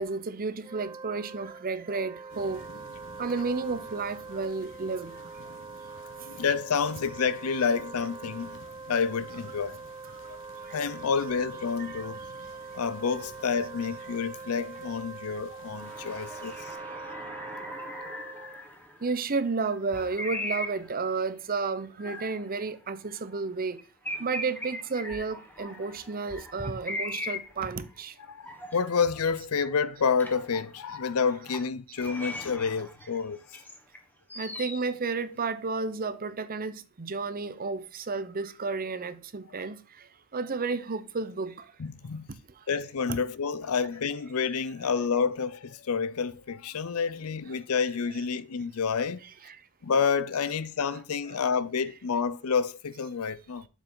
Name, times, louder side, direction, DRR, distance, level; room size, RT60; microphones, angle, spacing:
voice 1, 0.0-2.6 3.2-5.1 11.9-12.0 19.0-23.8 24.2-28.1 31.2-31.3 34.4-39.8 40.3-41.5 43.1-43.2 49.4-49.5, right 4 dB, 40° right, 0.7 m, -32 dB
Wind instrument woodwind instrument, 0.5-18.7, right 4 dB, 20° right, 0.3 m, -43 dB
sound 1, 2.3-16.8, left 3 dB, 60° left, 0.9 m, -53 dB
voice 2, 6.3-8.6 8.9-9.8 10.3-10.4 10.7-12.2 12.7-16.6 28.3-33.4 41.8-42.3 42.7-49.2 49.8-53.7, left 5 dB, 80° left, 0.6 m, -29 dB
sound 2, 15.8-19.2 19.7-21.1 21.6-22.4 22.8-22.9 23.3-23.4 23.8-27.9 28.4-29.4 29.7-29.8 30.2-31.0 31.4-31.7 31.9-34.0 34.3-34.9, left 1 dB, 10° left, 1.3 m, -39 dB
7.3 x 5.7 x 3.9 m
head